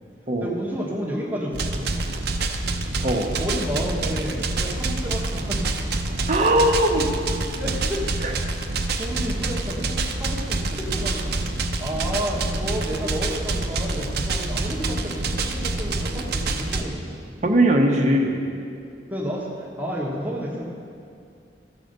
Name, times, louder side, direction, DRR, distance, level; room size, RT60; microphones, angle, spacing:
voice 1, 0.4-2.0 3.4-5.8 7.6-8.2 9.0-11.3 11.8-17.2 19.1-20.6, equal, 10° right, -3 dB, 1.2 m, -31 dB
sound 1, 1.5-16.8, right 3 dB, 60° right, 0.7 m, -27 dB
voice 2, 6.3-7.1 8.2-8.3 17.4-18.4, right 1 dB, 40° right, 1 dB, 1.1 m, -19 dB
14.5 x 4.9 x 6.6 m, 2.4 s
head